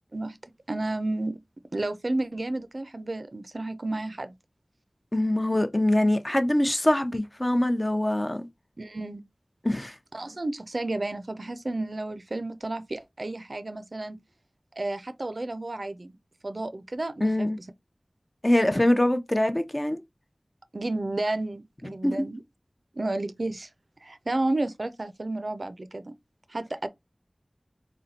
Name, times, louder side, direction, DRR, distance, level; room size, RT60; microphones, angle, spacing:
voice 1, 0.1-1.4 1.7-4.3 8.8-9.2 10.1-14.2 14.7-16.1 16.4-17.6 20.7-22.4 22.9-23.7 24.0-26.1 26.5-26.9, right 2 dB, 65° right, 0.4 m, -32 dB
voice 2, 5.1-8.5 9.6-9.9 17.2-17.6 18.4-20.0 22.0-22.1, left 1 dB, 30° left, 0.6 m, -23 dB
4.0 x 2.2 x 3.9 m
wide cardioid pair, 50°, 0 cm